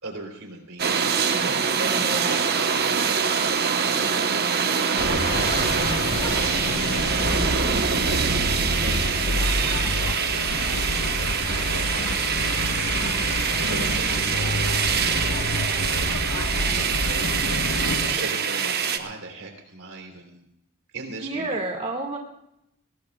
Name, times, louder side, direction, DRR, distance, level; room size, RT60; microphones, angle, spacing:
voice 1, 0.0-7.3 7.9-8.3 8.7-10.4 10.7-13.1 13.6-20.4 20.9-21.5, right 3 dB, 65° right, 3 dB, 3.7 m, -39 dB
sound 1, 0.8-19.0, right 6 dB, 45° right, 1.1 m, -24 dB
sound 2, 1.0-9.8, equal, 10° left, 5.8 m, -48 dB
voice 2, 1.3-2.4 7.3-7.7 13.0-13.2 18.0-18.2 21.2-22.2, right 2 dB, 30° right, 0 dB, 2.0 m, -32 dB
sound 3, 5.0-18.1, left 1 dB, 85° left, 1.5 m, -28 dB
22.0 x 19.5 x 2.4 m, 0.81 s
head